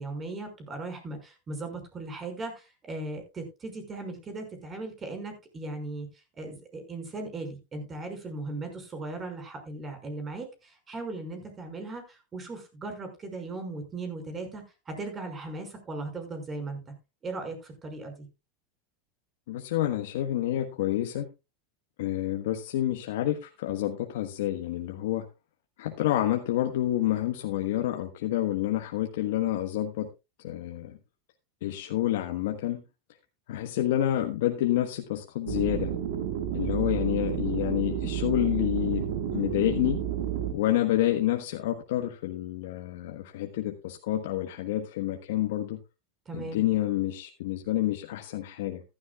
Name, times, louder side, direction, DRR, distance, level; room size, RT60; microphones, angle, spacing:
voice 1, 0.0-6.1 6.3-16.9 17.2-18.3 46.3-46.6, right 2 dB, 25° right, 6 dB, 5.6 m, -38 dB
voice 2, 19.5-21.3 22.0-25.2 25.8-30.1 30.4-30.9 31.6-32.8 33.5-35.9 36.5-40.0 40.5-45.8 46.3-48.8, left 13 dB, 75° left, 4 dB, 1.3 m, -28 dB
sound 1, 35.5-40.5, right 10 dB, 75° right, 1.9 m, -31 dB
14.5 x 12.5 x 2.4 m, 0.27 s
supercardioid pair, 115°, 0 cm